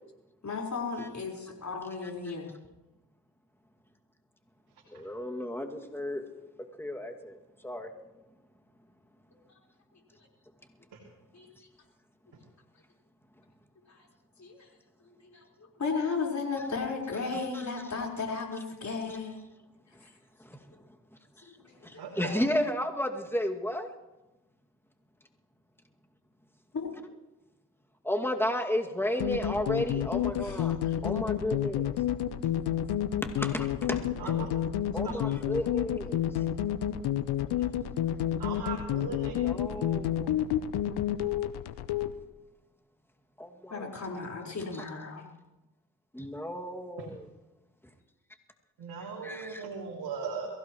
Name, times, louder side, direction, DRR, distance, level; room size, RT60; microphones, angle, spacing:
voice 1, 0.4-2.5 11.3-11.5 13.9-14.1 14.4-14.7 15.2-19.4 20.0-20.1 21.6-21.8 26.7-26.9 30.4-31.0 40.9-41.0 43.7-45.2, left 4 dB, 45° left, -1 dB, 4.7 m, -35 dB
voice 2, 4.9-6.3 6.8-7.4 7.6-7.9 17.5-17.6 19.9-20.0 20.4-20.6 21.8-24.0 28.0-30.8 31.0-31.9 33.4-34.3 34.9-36.2 39.3-40.4 43.4-43.9 46.1-47.3 49.2-49.7, left 1 dB, 5° left, 2 dB, 2.3 m, -33 dB
voice 3, 22.0-22.4 34.2-34.5 38.4-39.3 39.7-39.8 48.8-50.5, right 5 dB, 65° right, -2 dB, 2.7 m, -38 dB
sound 1, 29.2-42.1, left 11 dB, 80° left, 0.8 m, -30 dB
22.5 x 16.0 x 3.1 m, 1.0 s
supercardioid pair, 45°, 38 cm